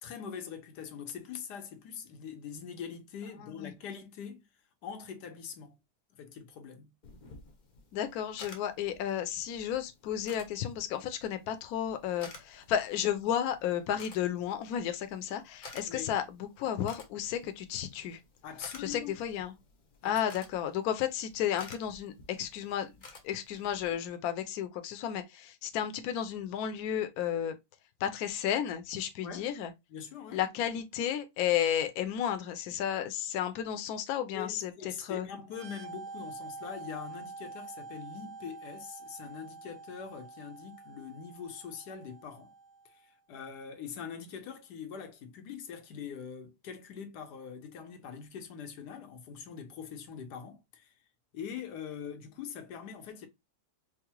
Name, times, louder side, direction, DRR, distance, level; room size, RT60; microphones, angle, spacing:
voice 1, 0.0-4.4 4.8-5.8 6.1-6.9 15.8-16.1 18.4-19.2 20.0-20.2 29.2-29.5 29.9-30.4 34.3-42.5 42.8-50.9 51.3-53.3, left 7 dB, 90° left, 1.3 m, -43 dB
sound 1, 7.0-23.9, left 3 dB, 45° left, 0.6 m, -53 dB
voice 2, 7.9-16.2 16.6-18.2 18.8-19.5 20.0-22.9 23.2-27.5 28.0-29.7 30.3-35.3, left 10 dB, 70° left, 1.0 m, -33 dB
sound 2, 35.5-43.0, right 4 dB, 55° right, 1.1 m, -47 dB
4.5 x 2.1 x 2.9 m
omnidirectional pair, 1.7 m